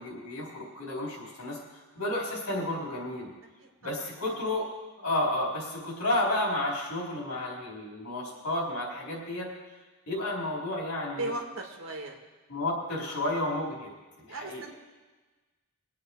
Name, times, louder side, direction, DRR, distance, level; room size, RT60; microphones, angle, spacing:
voice 1, 0.0-3.3 3.8-4.7 5.0-9.5 10.1-11.3 12.5-13.9 14.2-14.6, left 1 dB, 80° left, -2 dB, 4.1 m, -31 dB
voice 2, 3.6-4.1 11.2-12.2 13.0-13.2 14.3-14.7, right 2 dB, 65° right, 1 dB, 2.0 m, -38 dB
22.0 x 8.4 x 4.7 m, 1.3 s
head